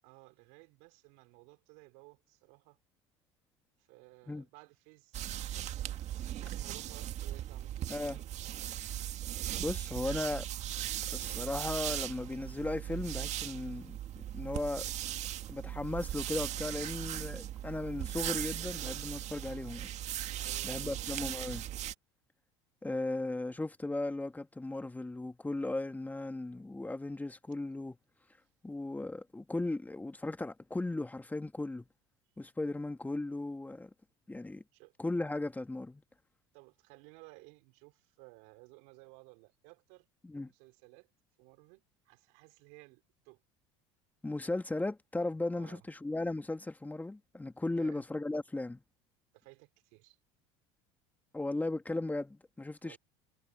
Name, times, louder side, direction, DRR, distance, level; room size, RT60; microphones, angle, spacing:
voice 1, 0.0-2.8 3.8-5.8 6.3-7.9 20.3-21.0 34.7-34.9 36.5-40.1 40.5-41.1 41.4-43.4 45.5-45.9 47.8-48.0 49.3-50.2 52.8-53.0, right 29 dB, 65° right, 3.5 m, -57 dB
sound 1, 5.1-21.9, right 12 dB, 50° right, 2.1 m, -38 dB
voice 2, 7.9-8.2 9.6-10.5 11.1-14.8 15.5-19.9 20.6-21.7 22.8-28.0 28.6-31.9 32.4-33.9 34.3-34.6 35.0-36.0 40.2-40.5 44.2-48.8 51.3-53.0, left 2 dB, 10° left, 2.0 m, -36 dB
hypercardioid pair, 75°, 15 cm